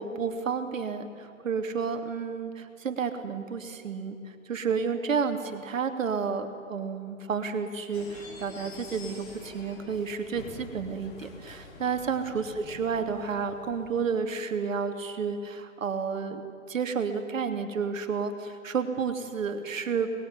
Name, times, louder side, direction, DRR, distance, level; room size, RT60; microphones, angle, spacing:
voice 1, 0.0-20.2, right 5 dB, 70° right, 7 dB, 3.1 m, -31 dB
sound 1, 7.9-14.1, left 3 dB, 45° left, 5.3 m, -47 dB
24.0 x 21.0 x 9.8 m, 2.5 s
hypercardioid pair, 135°, 40 cm